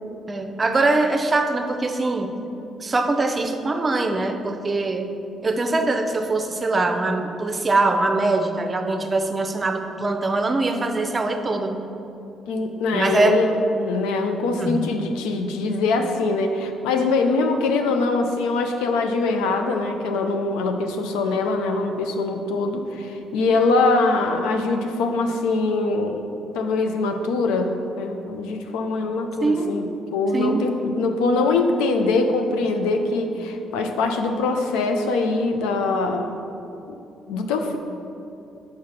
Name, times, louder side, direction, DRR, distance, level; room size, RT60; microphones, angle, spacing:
voice 1, 0.3-2.3 2.8-5.1 5.4-11.9 12.9-13.4 14.6-14.9 29.4-29.8 30.3-30.6, right 2 dB, 35° right, 6 dB, 0.6 m, -22 dB
voice 2, 12.5-26.3 26.5-36.3 36.9-37.0 37.3-37.8, left 3 dB, 80° left, 5 dB, 0.4 m, -23 dB
4.7 x 4.6 x 5.9 m, 2.8 s
hypercardioid pair, 50°, 0 cm